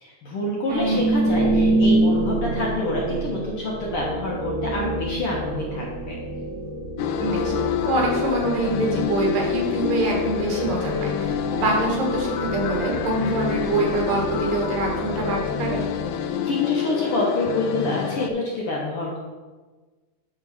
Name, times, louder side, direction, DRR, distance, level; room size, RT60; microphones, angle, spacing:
voice 1, 0.0-6.2 16.4-19.2, left 1 dB, 60° left, -3 dB, 1.6 m, -27 dB
sound 1, 0.7-16.4, right 1 dB, 60° right, 1.0 m, -27 dB
voice 2, 0.7-1.0 7.2-15.8, right 1 dB, 85° right, -1 dB, 3.6 m, -25 dB
sound 2, 7.0-18.3, left 9 dB, 85° left, 1.7 m, -27 dB
11.0 x 3.8 x 5.7 m, 1.3 s
omnidirectional pair, 3.8 m